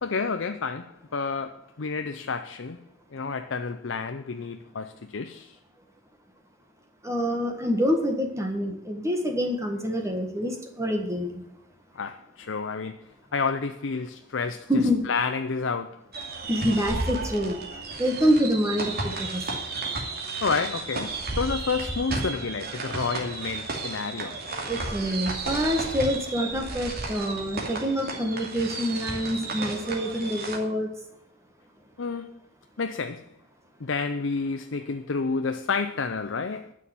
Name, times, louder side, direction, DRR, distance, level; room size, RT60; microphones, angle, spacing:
voice 1, 0.0-5.6 11.9-16.0 20.4-24.4 32.0-32.4 32.8-33.3 33.8-36.7, left 4 dB, 70° left, 0.6 m, -30 dB
voice 2, 7.0-11.4 14.7-15.0 16.5-17.6 18.0-19.6 24.6-30.9, equal, 15° right, 1.6 m, -26 dB
sound 1, 16.1-30.6, right 3 dB, 55° right, 2.5 m, -33 dB
11.0 x 6.5 x 9.2 m
head